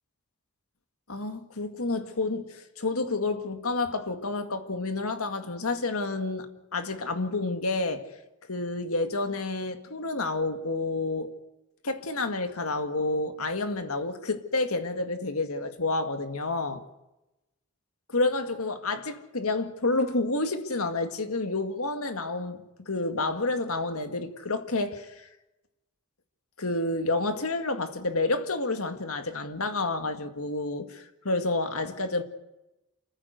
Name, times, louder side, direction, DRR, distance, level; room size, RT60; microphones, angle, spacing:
voice 1, 1.1-8.1 8.5-11.3 11.8-16.8 18.1-25.3 26.6-32.2, left 2 dB, 80° left, 2.0 m, -29 dB
28.0 x 15.0 x 7.9 m
head